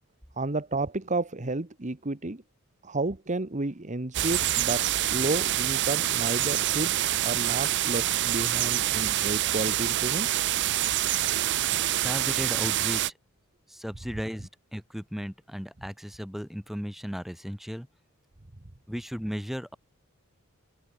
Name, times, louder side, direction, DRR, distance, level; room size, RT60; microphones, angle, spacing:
voice 1, 0.4-2.4 2.8-10.4, right 2 dB, 35° right, 1.3 m, -32 dB
sound 1, 4.1-13.1, right 14 dB, 55° right, 0.5 m, -26 dB
voice 2, 12.0-13.0 13.7-17.9 18.9-19.8, equal, ahead, 7.0 m, -35 dB
open air
head